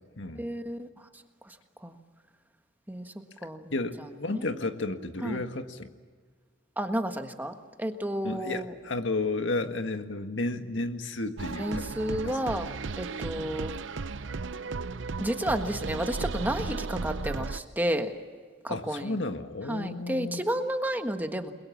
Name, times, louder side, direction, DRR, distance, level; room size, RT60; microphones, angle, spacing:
voice 1, 0.4-0.9 1.5-1.6 1.8-2.0 2.9-3.1 3.4-3.7 4.3-4.5 5.2-5.4 6.8-8.7 11.6-12.7 13.0-13.7 15.2-18.1 18.6-19.2 19.7-21.5, equal, 10° right, 6 dB, 1.4 m, -31 dB
voice 2, 3.4-5.9 8.2-12.5 18.7-20.4, left 2 dB, 80° left, 7 dB, 1.8 m, -33 dB
sound 1, 11.4-17.6, right 4 dB, 85° right, 0.7 m, -35 dB
29.5 x 22.0 x 7.2 m, 1.5 s
head